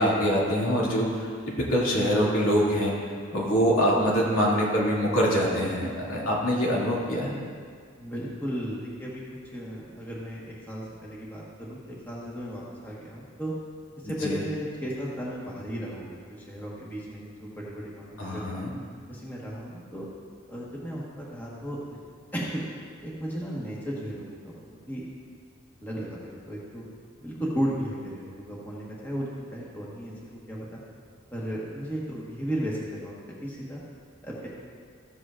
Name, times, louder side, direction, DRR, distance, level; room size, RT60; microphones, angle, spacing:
voice 1, 0.0-2.9 3.3-7.3 14.2-14.4 18.2-18.7, equal, 90° left, -6 dB, 2.4 m, -24 dB
voice 2, 8.0-9.2 9.5-13.5 14.0-18.6 19.1-20.1 20.5-21.8 22.3-22.6 23.0-25.0 25.8-26.8 27.2-30.8 31.3-33.8 34.2-34.5, equal, 10° left, -6 dB, 1.3 m, -35 dB
14.5 x 8.0 x 2.5 m, 2.1 s
head